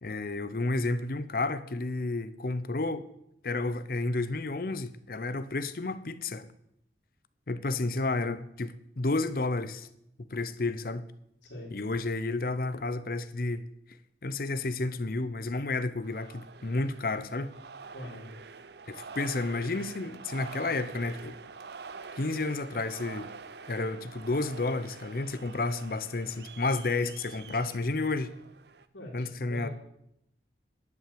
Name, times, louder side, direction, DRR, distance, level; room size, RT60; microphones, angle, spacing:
voice 1, 0.0-3.0 3.4-6.5 7.5-9.9 10.3-11.0 11.7-13.6 14.2-17.5 18.9-21.4 22.2-23.3 23.7-28.3 29.1-29.7, left 3 dB, 50° left, 13 dB, 0.7 m, -31 dB
sound 1, 16.0-28.9, right 5 dB, 65° right, 0.6 m, -46 dB
voice 2, 17.9-18.3 28.9-29.7, left 1 dB, 85° left, -7 dB, 3.3 m, -42 dB
11.0 x 5.7 x 8.5 m, 0.78 s
head